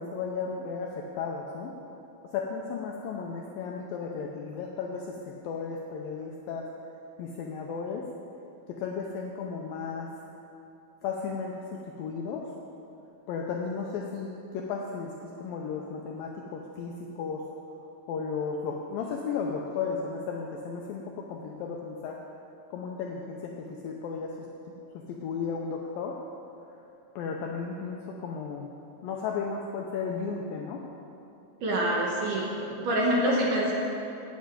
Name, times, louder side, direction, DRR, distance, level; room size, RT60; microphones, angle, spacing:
voice 1, 0.0-1.7 2.3-6.7 7.2-8.0 8.7-10.1 11.0-12.5 13.3-17.4 18.1-22.2 22.7-24.3 25.1-26.2 27.2-28.7 29.0-30.8, left 5 dB, 85° left, 0 dB, 2.1 m, -34 dB
voice 2, 31.6-33.7, right 1 dB, 65° right, -3 dB, 2.3 m, -26 dB
9.1 x 7.4 x 8.8 m, 2.8 s
omnidirectional pair, 4.9 m